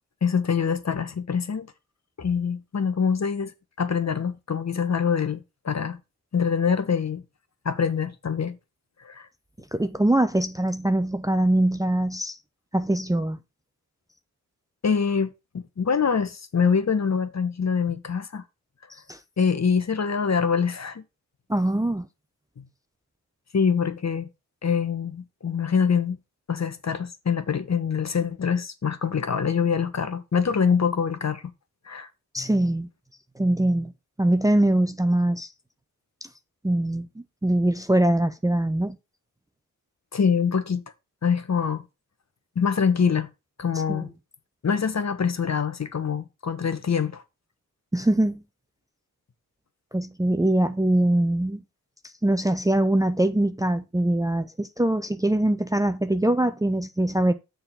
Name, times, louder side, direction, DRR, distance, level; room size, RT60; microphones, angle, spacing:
voice 1, 0.2-1.7 2.2-3.5 3.8-6.0 6.3-7.2 7.6-8.6 9.0-9.3 14.8-18.4 19.4-21.0 22.6-22.7 23.5-24.3 24.6-26.2 26.5-31.4 31.9-32.1 40.1-40.8 41.2-41.8 42.5-43.3 43.6-44.1 44.6-47.2, left 6 dB, 45° left, 1.3 m, -24 dB
voice 2, 9.7-12.4 12.7-13.4 19.1-19.2 21.5-22.1 32.3-32.9 33.4-33.9 34.2-35.5 36.6-37.1 37.4-39.0 43.9-44.0 47.9-48.4 49.9-51.6 52.2-57.3, right 1 dB, 10° right, 0.7 m, -22 dB
6.6 x 4.0 x 5.9 m
supercardioid pair, 50°, 38 cm